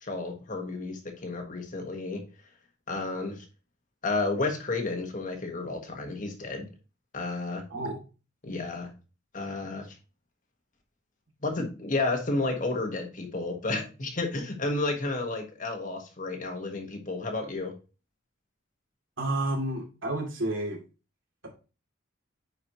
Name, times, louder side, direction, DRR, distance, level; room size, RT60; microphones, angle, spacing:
voice 1, 0.0-2.2 2.9-3.4 4.0-6.7 7.1-7.6 8.4-8.9 9.3-9.9 11.4-17.7, left 3 dB, 40° left, 4 dB, 1.5 m, -31 dB
voice 2, 7.7-8.0 19.2-20.8, right 1 dB, 80° right, -1 dB, 2.7 m, -30 dB
9.2 x 4.8 x 3.0 m, 0.32 s
head